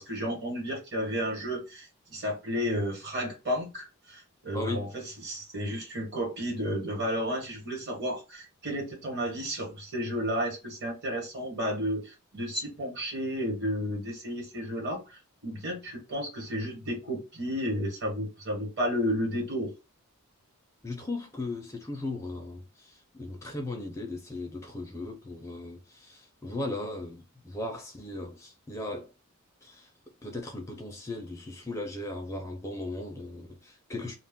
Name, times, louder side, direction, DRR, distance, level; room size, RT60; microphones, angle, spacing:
voice 1, 0.0-19.7, equal, 50° right, 1.1 m, -32 dB
voice 2, 4.5-4.9 20.8-29.1 29.6-29.9 30.2-34.1, left 2 dB, 15° left, 0.4 m, -37 dB
2.2 x 2.0 x 3.5 m
head